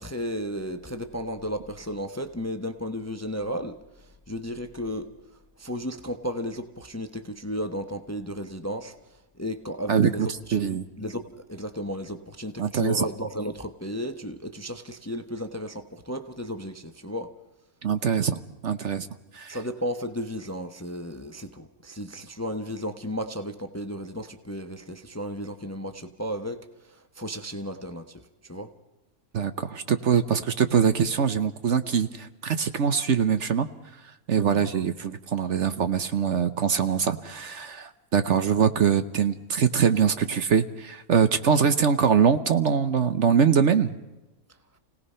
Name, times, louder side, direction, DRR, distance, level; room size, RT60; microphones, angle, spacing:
voice 1, 0.0-5.1 5.6-17.3 19.5-28.7 34.4-34.8, equal, 15° left, 8 dB, 0.8 m, -34 dB
voice 2, 9.9-10.8 12.6-13.0 17.8-19.1 19.3-19.6 29.3-33.7 34.3-44.0, right 7 dB, 55° right, 11 dB, 1.1 m, -23 dB
29.0 x 18.0 x 5.6 m, 1.0 s
omnidirectional pair, 1.6 m